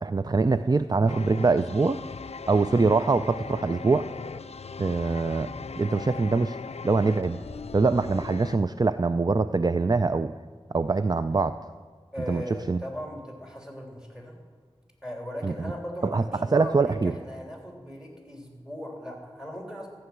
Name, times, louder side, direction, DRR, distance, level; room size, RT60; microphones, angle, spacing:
voice 1, 0.0-2.0 2.5-4.1 4.8-6.6 6.8-7.4 7.7-10.3 10.7-11.6 12.3-12.4 12.7-12.8 15.4-15.5 16.1-16.2 16.5-17.1, right 3 dB, 40° right, 11 dB, 0.4 m, -23 dB
sound 1, 1.1-8.6, left 5 dB, 75° left, 0.4 m, -39 dB
voice 2, 12.1-14.3 15.0-19.9, left 1 dB, 5° right, 1 dB, 3.3 m, -38 dB
14.5 x 6.8 x 9.3 m, 1.5 s
wide cardioid pair, 50°, 11 cm